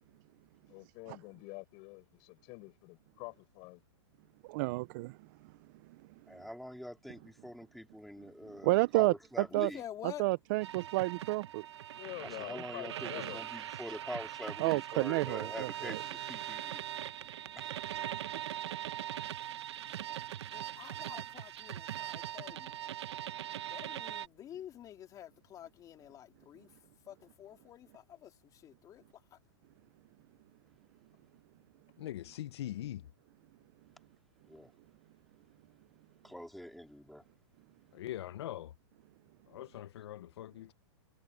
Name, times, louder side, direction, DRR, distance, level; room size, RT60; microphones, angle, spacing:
voice 1, 0.7-3.8 11.9-13.4, left 30 dB, 40° left, 5.7 m, -46 dB
voice 2, 4.4-5.2 8.6-9.7 10.0-11.6 14.6-16.0, right 22 dB, 45° right, 0.6 m, -30 dB
voice 3, 6.3-9.8 12.2-16.8 17.6-17.7 34.5-34.7 36.2-37.2, equal, ahead, 4.3 m, -45 dB
voice 4, 9.5-10.2 20.5-22.8 23.7-26.7 27.1-28.3 28.6-29.0 29.3-29.4, left 11 dB, 25° left, 3.2 m, -48 dB
sound 1, 10.6-24.3, right 11 dB, 70° right, 1.1 m, -41 dB
voice 5, 32.0-33.0 37.9-38.7 39.5-40.7, left 13 dB, 70° left, 0.8 m, -42 dB
hypercardioid pair, 140°, 15 cm